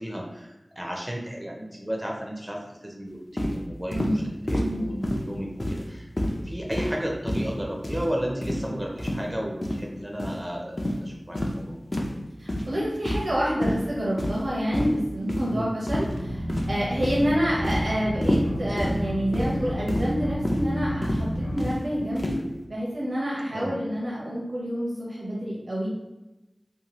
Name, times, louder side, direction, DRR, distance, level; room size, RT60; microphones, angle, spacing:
voice 1, 0.0-6.1 6.4-11.8 15.5-15.7 17.2-17.4 23.5-23.8, equal, 15° right, -1 dB, 0.4 m, -33 dB
sound 1, 3.4-3.6 3.9-4.1 4.5-4.7 5.0-5.3 5.6-5.9 6.2-6.4 6.7-7.0 7.3-7.5 7.8-8.1 8.4-8.6 9.0-9.2 9.6-9.8 10.2-10.4 10.8-11.0 11.4-11.6 11.9-12.1 12.5-12.7 13.1-13.3 13.6-13.8 14.2-14.5 14.7-14.9 15.3-15.4 15.9-16.2 16.5-16.8 17.0-17.3 17.6-17.9 18.2-18.5 18.8-19.0 19.3-19.5 19.9-20.1 20.5-20.6 21.0-21.2 21.6-21.8 22.2-22.4, left 1 dB, 50° left, 0.4 m, -27 dB
voice 2, 3.9-4.3 4.6-5.1 12.4-22.4 22.7-25.9, equal, 80° right, -6 dB, 0.7 m, -28 dB
sound 2, 16.1-21.7, equal, 70° left, 0.9 m, -31 dB
2.7 x 2.3 x 2.9 m, 1.0 s
wide cardioid pair, 50°, 0 cm